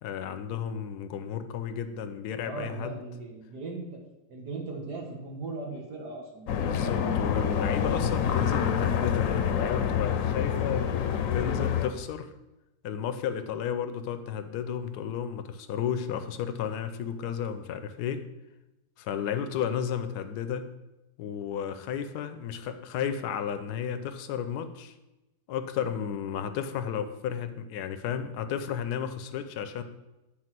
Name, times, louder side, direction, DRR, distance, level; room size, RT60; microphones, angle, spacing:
voice 1, 0.0-3.0 6.6-10.9 11.3-12.3 12.8-18.2 19.0-20.7 21.2-25.0 25.5-29.8, left 8 dB, 85° left, 10 dB, 1.2 m, -33 dB
voice 2, 2.4-3.8 4.3-6.5 7.6-8.4, right 3 dB, 90° right, 0 dB, 2.1 m, -39 dB
sound 1, 6.5-11.9, left 8 dB, 65° left, 0.9 m, -27 dB
8.4 x 4.3 x 6.0 m, 1.0 s
omnidirectional pair, 1.7 m